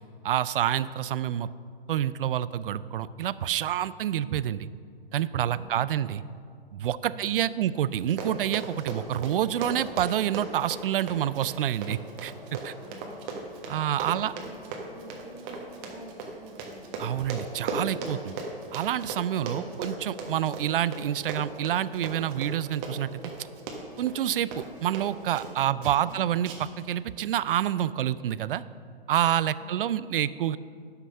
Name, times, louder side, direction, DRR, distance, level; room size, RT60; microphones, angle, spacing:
voice 1, 0.2-1.5 1.9-4.7 5.1-6.2 6.7-12.7 13.7-14.3 17.0-18.4 18.7-23.2 24.0-26.5 26.8-28.6 29.1-30.6, right 11 dB, 60° right, 17 dB, 0.4 m, -28 dB
voice 2, 5.5-6.1 7.1-7.8 12.8-13.4 14.1-16.9 19.5-19.9 25.6-26.3 29.6-30.2, right 1 dB, 10° right, 2 dB, 0.9 m, -50 dB
Run, 7.9-25.5 25.8-26.1 26.4-26.8 27.2-27.3, right 3 dB, 30° right, 1.3 m, -37 dB
11.5 x 6.0 x 5.5 m, 2.2 s
hypercardioid pair, 140°, 31 cm